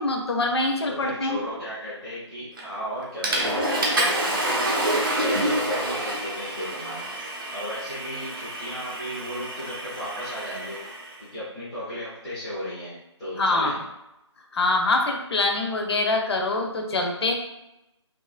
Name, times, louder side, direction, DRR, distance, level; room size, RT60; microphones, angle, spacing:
voice 1, 0.0-1.4 13.4-13.7 14.5-17.3, left 2 dB, 60° left, 2 dB, 0.5 m, -24 dB
voice 2, 0.9-10.8 11.2-13.8, equal, ahead, -14 dB, 0.4 m, -35 dB
Water / Toilet flush, 2.6-2.8 3.2-11.1, right 1 dB, 45° right, 0.6 m, -28 dB
2.7 x 2.4 x 2.3 m, 0.91 s
figure-of-eight pair, 165°, 16 cm